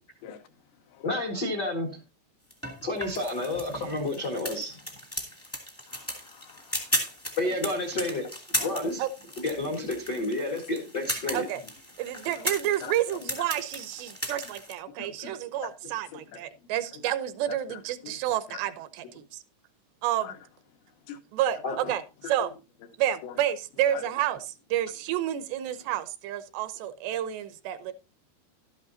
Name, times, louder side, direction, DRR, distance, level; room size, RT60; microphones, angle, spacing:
voice 1, 1.0-1.9 2.8-4.8 7.4-8.2 8.6-9.0 9.4-11.4 21.6-21.7, left 2 dB, 60° left, 1.0 m, -30 dB
sound 1, 2.5-14.7, equal, 10° left, 0.7 m, -36 dB
voice 2, 5.9-6.9 8.5-8.7 9.7-9.8 12.8-12.9 15.0-15.4 16.1-16.4 17.7-17.8 18.0-18.2 18.5-18.6 20.2-20.3 21.1-21.2 21.7-21.9 22.2-22.3 23.2-23.3 23.9-24.0, left 9 dB, 80° left, 3.2 m, -42 dB
voice 3, 12.0-19.2 20.0-20.4 21.3-22.5 23.0-27.9, right 11 dB, 80° right, 2.8 m, -30 dB
12.0 x 10.5 x 2.7 m
omnidirectional pair, 5.1 m